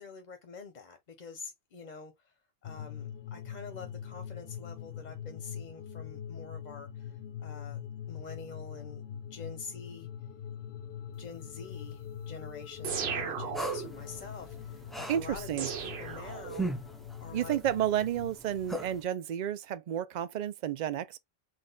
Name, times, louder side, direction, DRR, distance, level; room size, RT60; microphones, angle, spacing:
voice 1, 0.0-2.3 2.6-7.8 8.1-10.1 11.2-16.7 17.2-17.6, left 5 dB, 50° left, 0.8 m, -47 dB
sound 1, 2.6-18.3, left 9 dB, 80° left, 0.8 m, -43 dB
sound 2, 12.8-14.1 15.6-16.9, right 7 dB, 80° right, 1.0 m, -36 dB
sound 3, 13.5-19.0, right 1 dB, ahead, 0.5 m, -41 dB
voice 2, 15.1-15.7 17.3-21.2, right 11 dB, 55° right, 0.5 m, -31 dB
3.9 x 2.3 x 3.8 m
omnidirectional pair, 1.0 m